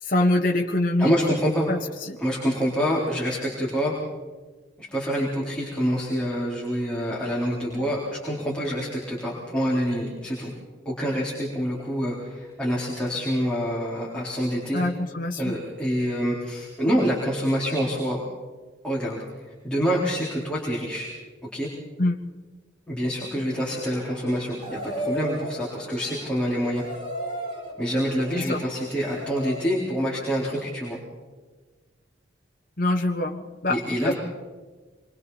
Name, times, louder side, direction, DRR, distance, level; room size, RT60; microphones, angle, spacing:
voice 1, 0.0-1.1 1.7-2.2 14.7-15.5 22.0-22.2 28.3-28.6 32.8-34.1, left 1 dB, 50° left, 1 dB, 1.3 m, -24 dB
voice 2, 1.0-1.7 2.2-3.9 4.8-10.5 10.9-14.8 15.4-18.2 18.8-21.1 21.5-21.7 22.9-26.8 27.8-31.0 33.7-34.1, equal, 5° left, -6 dB, 4.1 m, -26 dB
sound 1, 23.5-29.7, right 1 dB, 30° right, 7.1 m, -36 dB
27.0 x 24.0 x 4.2 m, 1.3 s
head